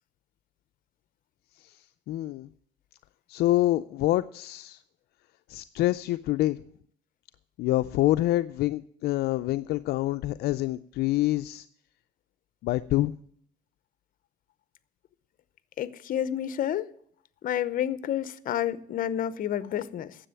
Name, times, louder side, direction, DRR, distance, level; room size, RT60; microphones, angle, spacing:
voice 1, 1.6-2.5 3.3-4.8 5.5-6.6 7.6-11.7 12.6-13.1, left 16 dB, 75° left, 0.4 m, -26 dB
voice 2, 15.8-16.9 17.4-20.2, left 10 dB, 55° left, 0.8 m, -29 dB
10.0 x 7.6 x 9.0 m
cardioid pair, 110°, 17 cm